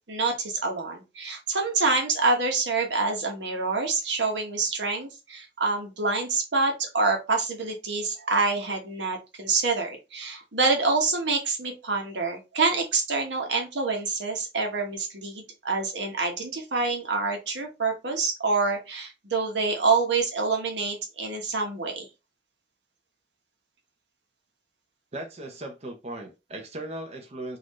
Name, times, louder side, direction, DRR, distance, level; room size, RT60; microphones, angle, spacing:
voice 1, 0.1-22.1, right 3 dB, 80° right, 2 dB, 1.1 m, -26 dB
voice 2, 25.1-27.6, right 1 dB, 35° right, 2 dB, 0.7 m, -37 dB
4.0 x 2.5 x 3.0 m, 0.26 s
head